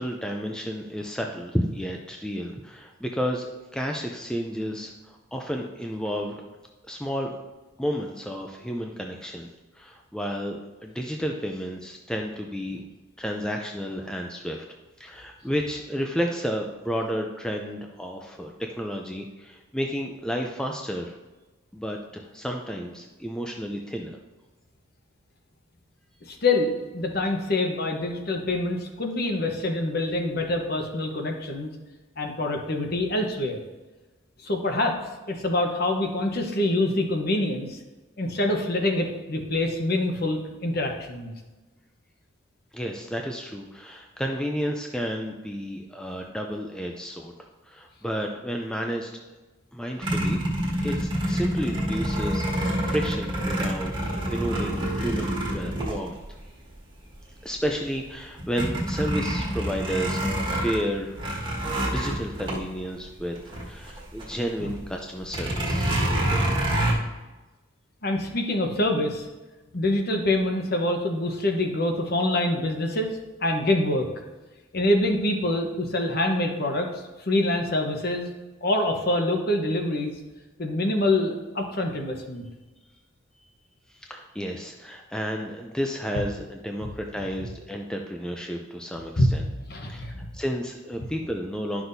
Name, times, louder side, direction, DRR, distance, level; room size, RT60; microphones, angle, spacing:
voice 1, 0.0-6.4 6.9-7.3 7.8-9.5 9.7-12.8 13.2-14.6 15.0-21.1 21.7-24.2 42.7-47.3 47.7-49.2 49.7-50.4 50.8-56.2 57.4-60.2 60.6-61.2 61.8-65.9 83.9-89.4 89.9-91.8, equal, 5° left, 2 dB, 0.4 m, -31 dB
voice 2, 26.2-31.7 32.2-33.6 34.4-34.9 35.3-37.8 38.2-41.3 64.6-64.7 68.0-69.3 69.7-74.1 74.7-78.3 78.6-80.1 80.6-82.4 89.2-89.3 89.7-90.3, left 1 dB, 50° left, 3 dB, 1.0 m, -25 dB
sound 1, 50.0-56.7 57.2-57.3 57.7-64.4 64.6-64.8 65.3-66.9, right 1 dB, 25° right, 1.5 m, -27 dB
11.5 x 6.0 x 2.7 m, 1.2 s
head